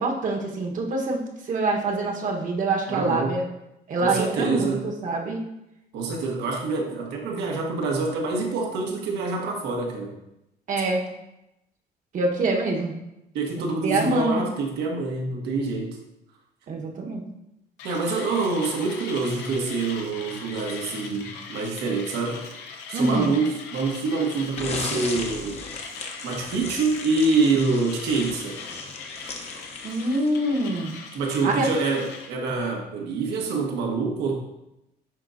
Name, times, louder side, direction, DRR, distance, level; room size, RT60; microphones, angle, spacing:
voice 1, 0.0-3.4 3.9-5.4 10.7-11.0 12.1-12.9 13.6-14.4 16.7-17.2 22.9-23.3 29.8-30.9 31.4-31.7, right 2 dB, 50° right, 1 dB, 1.2 m, -25 dB
voice 2, 2.9-3.4 4.0-4.8 5.9-10.2 13.3-16.0 17.8-22.5 22.9-25.6 26.2-28.6 31.1-34.3, right 3 dB, 80° right, 1 dB, 1.3 m, -26 dB
Mechanisms, 17.8-32.3, left 5 dB, 85° left, 0.9 m, -40 dB
sound 1, 24.6-30.5, left 4 dB, 40° left, 0.9 m, -36 dB
10.5 x 3.8 x 2.6 m, 0.88 s
cardioid pair, 110°, 17 cm